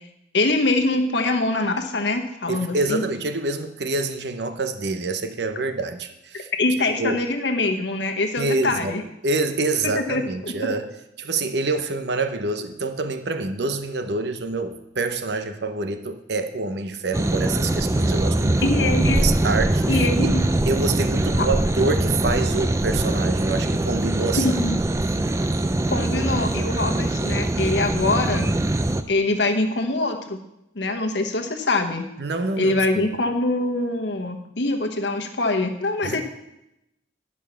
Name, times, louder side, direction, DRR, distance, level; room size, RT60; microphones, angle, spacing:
voice 1, 0.3-3.0 6.3-9.0 9.8-10.7 18.6-19.3 19.8-20.4 21.4-21.5 24.4-24.8 25.9-28.5 29.1-30.4 30.7-32.1 32.6-36.2, left 2 dB, 70° left, 5 dB, 1.1 m, -24 dB
voice 2, 2.5-6.5 7.0-7.2 8.4-9.0 9.2-10.9 11.2-18.7 19.0-24.4 32.2-33.1 36.0-36.2, right 3 dB, 65° right, 8 dB, 0.8 m, -26 dB
sound 1, 17.1-29.0, right 1 dB, 15° right, 0.4 m, -22 dB
11.0 x 5.5 x 6.7 m, 0.87 s
head